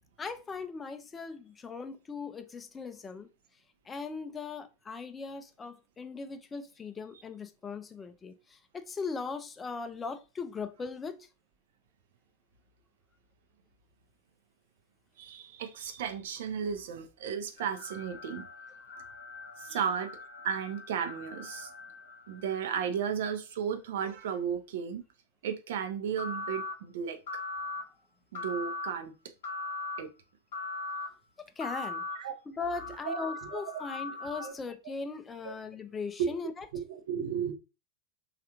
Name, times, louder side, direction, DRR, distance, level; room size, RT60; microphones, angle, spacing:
voice 1, 0.2-3.3 3.9-11.3 19.7-19.8 31.4-32.1 32.5-36.7, left 4 dB, 15° left, 0.4 m, -39 dB
voice 2, 15.2-18.5 19.6-20.1 20.4-21.7 22.3-25.0 25.4-27.2 28.3-29.1 30.0-30.1 32.2-32.3 33.1-33.8 34.4-34.5 35.4-35.5 36.2-36.3 36.7-37.5, right 7 dB, 55° right, 0.5 m, -34 dB
sound 1, 17.6-22.9 26.2-26.7 27.3-27.8 28.3-28.9 29.4-30.0 30.5-31.1 31.6-32.2 32.7-34.5, left 3 dB, 60° left, 0.8 m, -40 dB
3.2 x 2.4 x 2.8 m
figure-of-eight pair, 90°, 0 cm